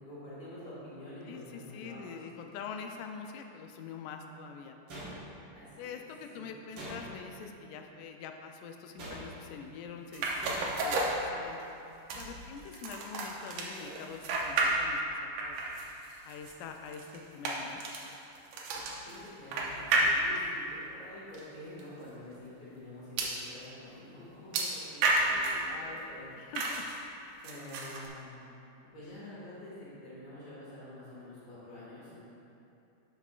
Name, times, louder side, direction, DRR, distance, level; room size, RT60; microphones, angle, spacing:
voice 1, 0.0-2.2 5.5-5.9 6.3-6.4 19.1-26.3 27.4-28.5 28.9-32.3, left 1 dB, 55° left, -10 dB, 2.9 m, -47 dB
voice 2, 1.3-5.1 5.8-11.6 12.1-15.8 16.2-17.8 25.3-26.8, left 6 dB, 90° left, 4 dB, 2.1 m, -45 dB
sound 1, 4.9-5.6 6.7-7.4 9.0-9.6 10.4-11.0, right 1 dB, 45° right, 1.7 m, -44 dB
sound 2, 10.1-11.7 12.1-15.1 15.4-20.6 21.3-21.4 21.8-21.9 23.2-23.4 24.5-25.7 26.5-27.0 27.4-28.1, right 2 dB, 80° right, 2.2 m, -32 dB
12.0 x 5.9 x 2.4 m, 2.7 s
omnidirectional pair, 3.6 m